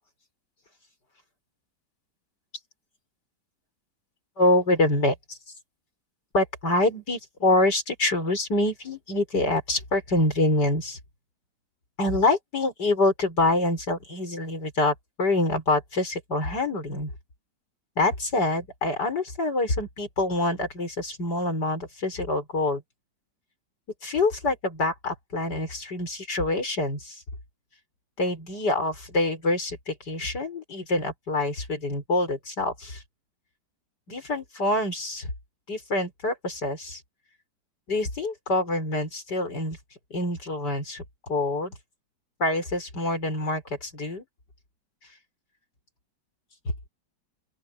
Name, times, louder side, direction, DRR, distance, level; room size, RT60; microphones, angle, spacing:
voice 1, 4.4-5.4 6.3-11.0 12.0-17.1 18.0-22.8 24.0-27.2 28.2-33.0 34.1-35.3 35.7-37.0 37.9-39.8 40.1-41.8 42.4-44.2 46.6-46.7, left 2 dB, 65° left, 6.4 m, -26 dB
open air
omnidirectional pair, 1.9 m